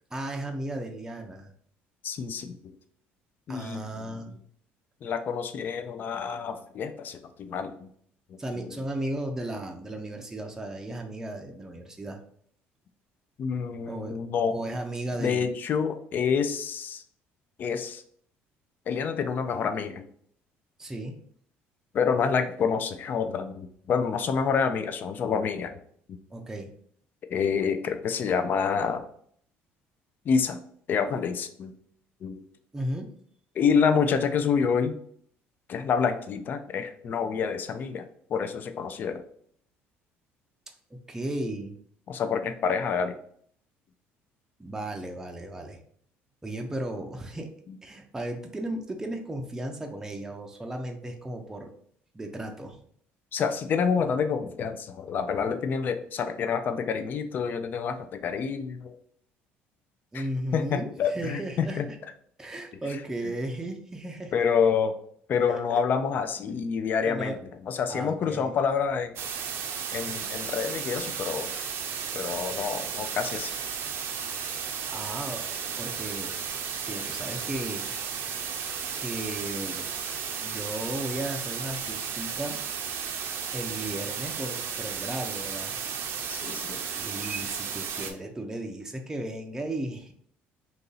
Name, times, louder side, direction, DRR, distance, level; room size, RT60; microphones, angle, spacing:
voice 1, 0.1-1.5 3.5-4.3 8.4-12.2 13.9-14.2 14.5-15.5 20.8-21.2 26.3-26.7 32.7-33.1 40.9-41.7 44.6-45.8 46.4-47.5 47.8-51.7 52.1-52.8 60.1-61.8 62.4-64.4 65.5-65.8 67.0-67.4 67.9-68.6 74.9-75.5 75.8-76.4 76.9-77.9 78.9-79.9 80.4-82.6 83.5-85.8 86.9-90.1, right 1 dB, 10° right, 3 dB, 0.5 m, -35 dB
voice 2, 2.0-2.7 3.5-4.2 5.0-7.9 8.3-8.8 13.4-14.6 15.2-17.0 17.6-18.0 18.9-20.1 21.9-25.8 26.1-26.2 27.3-29.0 30.2-30.6 30.9-31.8 32.2-32.4 33.6-35.0 35.7-39.2 42.1-43.2 47.7-47.8 53.3-59.0 60.1-60.3 60.5-61.9 64.3-64.9 65.3-67.4 67.6-69.1 69.9-71.5 72.1-73.5 86.3-86.8 88.0-88.2, left 6 dB, 45° left, 9 dB, 0.4 m, -28 dB
sound 1, 69.2-88.1, right 7 dB, 60° right, 0.5 m, -34 dB
2.9 x 2.6 x 3.8 m, 0.62 s
cardioid pair, 115°, 5 cm